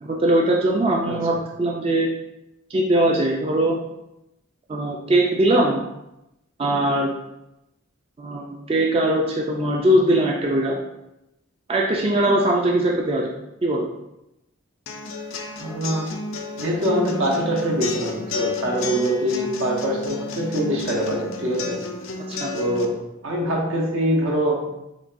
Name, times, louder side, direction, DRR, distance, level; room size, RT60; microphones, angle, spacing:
voice 1, 0.0-2.1 2.7-3.8 4.7-5.8 6.6-7.1 8.2-10.8 11.7-13.3 13.6-13.9 22.3-22.5, right 1 dB, 30° right, -1 dB, 0.3 m, -20 dB
sound 1, 14.9-22.8, left 3 dB, 85° left, 0.4 m, -32 dB
voice 2, 15.6-16.1 16.6-21.8 22.5-24.7, equal, 80° right, -2 dB, 0.9 m, -24 dB
5.9 x 2.3 x 2.5 m, 0.89 s
head